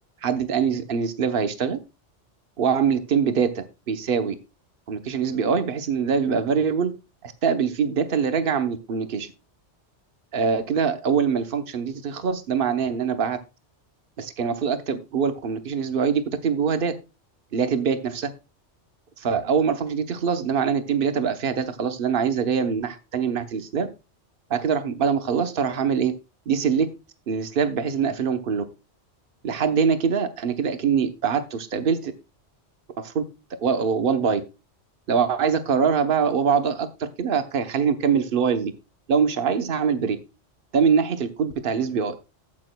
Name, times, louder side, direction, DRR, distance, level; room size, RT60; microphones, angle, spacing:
voice 1, 0.2-1.8 2.6-4.3 4.9-6.9 7.2-9.3 10.3-13.4 14.2-16.9 17.5-18.3 19.2-23.9 24.5-26.1 26.5-26.9 27.3-28.6 29.4-32.1 33.0-33.2 33.6-34.4 35.1-38.7 39.1-40.2 40.7-42.1, right 6 dB, 50° right, 8 dB, 1.1 m, -23 dB
13.5 x 8.5 x 2.2 m, 0.27 s
omnidirectional pair, 1.2 m